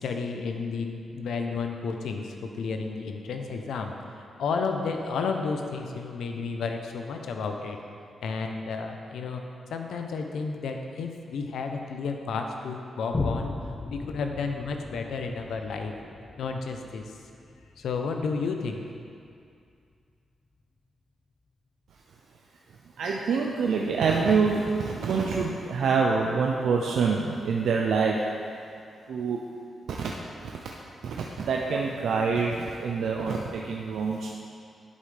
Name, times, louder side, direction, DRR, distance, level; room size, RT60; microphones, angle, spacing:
voice 1, 0.0-3.9 4.4-7.8 8.2-9.4 9.7-13.5 13.9-15.9 16.4-17.1 17.8-18.8, left 4 dB, 90° left, 4 dB, 0.6 m, -32 dB
Boom, 13.1-20.0 20.6-20.7, left 3 dB, 30° left, 0.5 m, -38 dB
voice 2, 23.0-28.3 29.1-29.4 29.9-30.6 31.0-34.4, right 5 dB, 85° right, -1 dB, 0.5 m, -26 dB
11.0 x 5.4 x 3.3 m, 2.4 s
cardioid pair, 110°, 0 cm